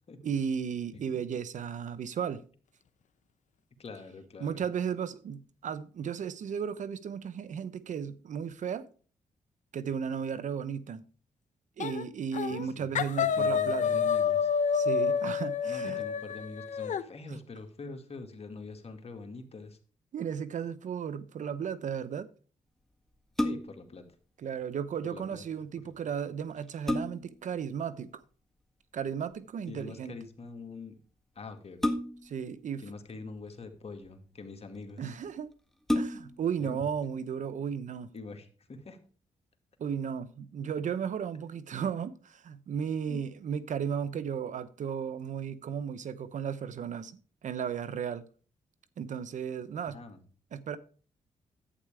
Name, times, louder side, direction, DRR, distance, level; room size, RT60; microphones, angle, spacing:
voice 1, 0.2-2.4 4.4-8.9 9.7-11.0 11.8-14.1 14.7-16.0 17.3-17.4 20.1-22.3 24.4-28.2 28.9-30.2 32.2-32.9 35.0-35.5 35.9-38.1 39.8-48.2 49.0-50.0 50.5-50.8, right 7 dB, 70° right, 0.9 m, -35 dB
voice 2, 3.8-4.7 12.5-14.5 15.7-19.8 23.4-24.0 25.0-25.4 29.7-30.9 31.4-31.8 32.8-35.1 36.6-37.1 38.1-39.0 43.1-43.2 49.9-50.2, left 3 dB, 50° left, 2.1 m, -44 dB
sound 1, 11.8-12.0 12.3-12.7 12.9-17.0, left 6 dB, 65° left, 0.8 m, -28 dB
sound 2, 23.1-23.9 25.9-26.0 26.5-27.4 29.0-29.3 31.8-32.4 33.4-34.1 34.8-34.9 35.2-35.3 35.8-36.5 37.0-37.1, left 1 dB, ahead, 1.6 m, -31 dB
11.5 x 8.6 x 3.4 m
cardioid pair, 60°, 13 cm